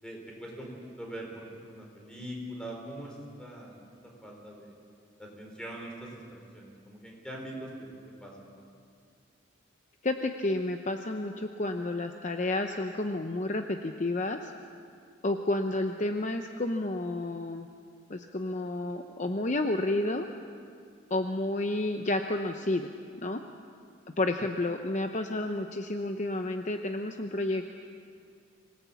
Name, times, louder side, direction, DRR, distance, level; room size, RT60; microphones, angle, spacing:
voice 1, 0.0-3.8 4.2-4.7 5.2-7.7 8.2-8.7, right 1 dB, 5° left, -1 dB, 4.4 m, -42 dB
voice 2, 10.0-14.5 15.2-17.7 18.1-20.3 21.1-22.9 23.2-23.4 24.2-27.7, left 2 dB, 35° left, 5 dB, 0.8 m, -30 dB
26.0 x 18.0 x 8.4 m, 2.3 s
head